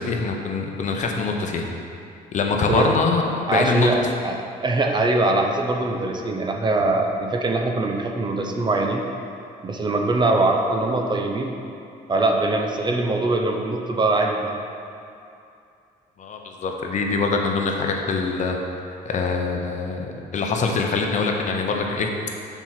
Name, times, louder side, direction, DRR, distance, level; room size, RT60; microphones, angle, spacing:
voice 1, 0.0-1.7 2.3-3.2 3.5-3.9 16.2-18.6 19.0-22.1, left 4 dB, 45° left, 2 dB, 0.9 m, -24 dB
voice 2, 3.5-9.0 9.6-11.5 12.1-14.6, right 2 dB, 25° right, 2 dB, 0.7 m, -22 dB
7.0 x 4.6 x 5.8 m, 2.6 s
cardioid pair, 110°, 17 cm